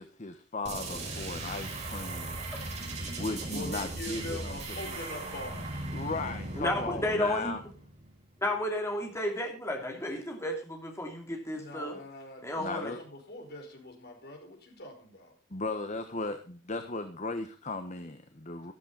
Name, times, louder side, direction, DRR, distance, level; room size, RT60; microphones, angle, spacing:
voice 1, 0.0-2.4 3.2-5.0 5.9-7.6 12.6-13.0 15.5-18.7, left 3 dB, 35° left, 8 dB, 1.2 m, -37 dB
sound 1, 0.6-8.2, right 2 dB, 35° right, 4.6 m, -38 dB
voice 2, 3.5-5.7 11.5-15.3, left 1 dB, 55° left, 2 dB, 5.0 m, -43 dB
voice 3, 6.6-7.5 8.4-12.0 12.4-12.9, left 1 dB, 15° left, 2 dB, 2.7 m, -32 dB
13.5 x 13.5 x 4.0 m, 0.35 s
head